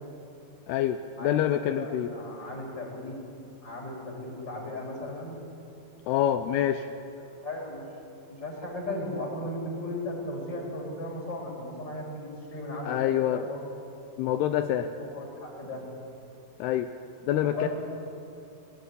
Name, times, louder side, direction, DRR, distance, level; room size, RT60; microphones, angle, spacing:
voice 1, 0.7-2.1 6.1-6.9 12.8-13.5 14.2-14.9 16.6-16.9 17.3-17.7, left 11 dB, 80° left, 7 dB, 2.7 m, -26 dB
voice 2, 1.2-3.2 3.6-5.4 7.3-7.9 8.3-13.6 15.0-15.9 17.4-17.7, left 1 dB, 25° left, -1 dB, 5.4 m, -36 dB
21.0 x 17.5 x 9.8 m, 2.7 s
omnidirectional pair, 4.8 m